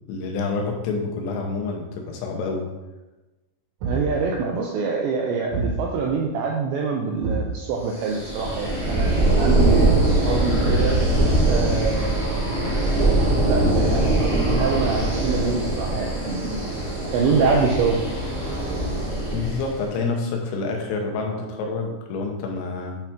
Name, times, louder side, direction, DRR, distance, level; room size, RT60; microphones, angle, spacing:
voice 1, 0.1-2.7 19.3-23.0, left 4 dB, 85° left, 2 dB, 3.8 m, -28 dB
Thump thud, 3.8-4.2 5.5-5.8 7.2-7.6 8.9-9.3 10.6-11.2, right 4 dB, 55° right, 4.2 m, -26 dB
voice 2, 3.8-11.0 11.5-12.7 13.5-16.6 17.1-18.0, right 4 dB, 85° right, 0 dB, 2.5 m, -25 dB
sound 1, 8.0-19.8, right 1 dB, 50° left, 1.2 m, -22 dB
8.9 x 5.7 x 3.6 m, 1.1 s
omnidirectional pair, 5.9 m